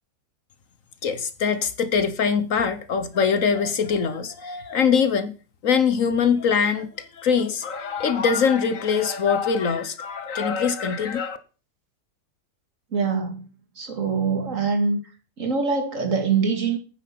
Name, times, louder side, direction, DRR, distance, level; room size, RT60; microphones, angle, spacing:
voice 1, 1.0-5.3 5.6-11.4, left 6 dB, 60° left, 1.3 m, -23 dB
voice 2, 12.9-13.5 13.8-15.0 15.4-16.8, right 5 dB, 55° right, 2.4 m, -24 dB
9.4 x 9.3 x 5.9 m
omnidirectional pair, 1.7 m